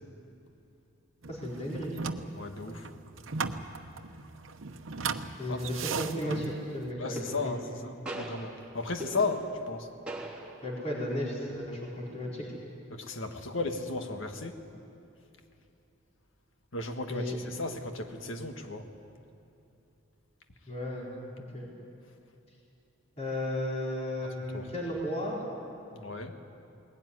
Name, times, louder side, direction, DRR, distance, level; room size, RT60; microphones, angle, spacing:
sound 1, 1.2-6.9, right 4 dB, 75° right, 0.9 m, -37 dB
voice 1, 1.3-2.0 5.4-7.5 10.6-12.5 17.1-17.4 20.7-21.1 21.5-21.7 23.2-25.4, left 1 dB, 35° left, -4 dB, 4.5 m, -34 dB
voice 2, 2.3-2.9 5.5-5.9 7.0-9.9 12.9-14.8 16.7-18.9 24.5-24.7 25.9-26.4, left 3 dB, 75° left, 5 dB, 1.7 m, -35 dB
sound 2, 6.1-6.3 7.2-7.8 8.1-9.8 10.1-10.8, right 1 dB, 5° right, 3.3 m, -41 dB
20.5 x 17.5 x 9.8 m, 2.8 s
head